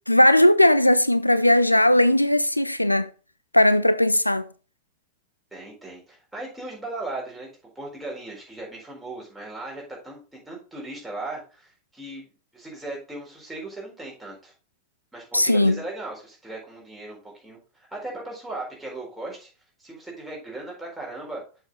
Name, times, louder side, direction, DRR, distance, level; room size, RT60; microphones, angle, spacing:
voice 1, 0.1-3.1 3.5-4.5 15.3-15.8, left 1 dB, 85° left, 0.4 m, -18 dB
voice 2, 5.5-7.5 7.7-12.3 12.5-14.5 15.1-19.5 19.8-21.4, right 2 dB, 5° right, 4.2 m, -37 dB
7.0 x 6.1 x 3.8 m
figure-of-eight pair, 90°, 0 cm